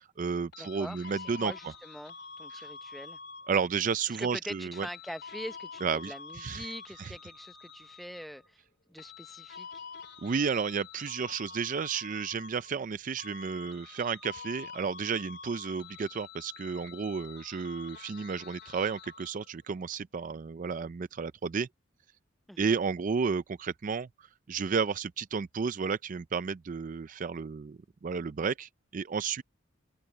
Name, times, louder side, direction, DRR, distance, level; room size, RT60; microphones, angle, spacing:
voice 1, 0.0-1.5 2.6-2.7 3.5-4.9 5.8-6.7 7.0-7.1 10.2-21.7 22.6-29.4, right 5 dB, 40° right, 0.4 m, -32 dB
sound 1, 0.5-3.9 4.7-8.5 9.0-12.9 13.2-19.5, left 5 dB, 55° left, 2.6 m, -47 dB
voice 2, 0.6-3.2 4.1-8.6 8.9-9.9 22.5-22.8, equal, ahead, 0.9 m, -43 dB
head